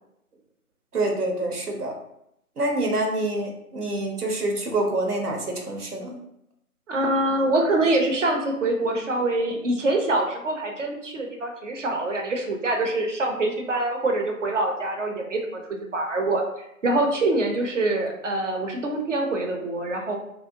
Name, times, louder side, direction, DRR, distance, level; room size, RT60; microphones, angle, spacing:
voice 1, 0.9-1.9 2.6-6.2, right 2 dB, 85° right, 2 dB, 0.8 m, -26 dB
voice 2, 6.9-16.4 16.8-20.2, right 2 dB, 55° right, 3 dB, 0.6 m, -25 dB
2.6 x 2.0 x 2.6 m, 0.79 s
figure-of-eight pair, 150°, 45 cm